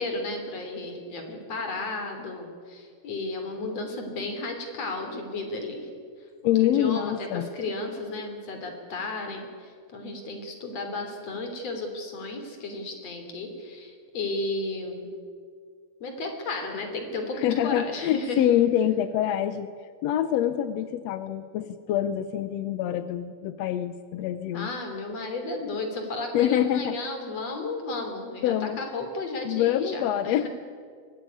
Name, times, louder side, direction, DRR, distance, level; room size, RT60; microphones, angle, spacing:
voice 1, 0.0-5.9 6.4-15.1 16.0-18.4 24.5-30.5, left 2 dB, 55° left, 5 dB, 4.3 m, -33 dB
voice 2, 6.4-7.5 17.4-19.7 20.0-24.7 26.3-27.0 28.4-28.8 29.5-30.5, left 11 dB, 70° left, 11 dB, 1.7 m, -25 dB
23.5 x 17.5 x 9.7 m, 2.1 s
omnidirectional pair, 3.5 m